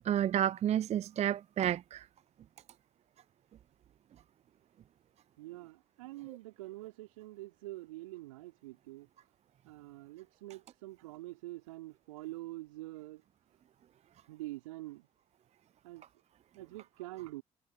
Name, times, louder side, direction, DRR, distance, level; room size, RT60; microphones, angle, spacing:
voice 1, 0.0-2.1, right 11 dB, 40° right, 0.5 m, -30 dB
voice 2, 5.4-9.1 9.6-13.2 14.3-15.1 15.8-16.0 16.5-17.4, right 18 dB, 75° right, 4.7 m, -46 dB
figure-of-eight pair, 50°, 17 cm